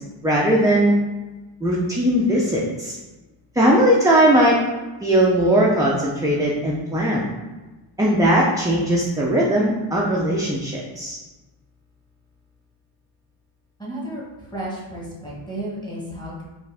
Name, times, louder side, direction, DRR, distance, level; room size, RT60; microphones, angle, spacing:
voice 1, 0.2-0.9 1.6-3.0 3.5-4.6 5.0-7.3 8.0-11.2, right 1 dB, 10° right, -4 dB, 0.3 m, -19 dB
voice 2, 13.8-16.4, right 1 dB, 10° left, -5 dB, 1.2 m, -33 dB
4.4 x 2.5 x 3.5 m, 1.2 s
wide cardioid pair, 125°, 49 cm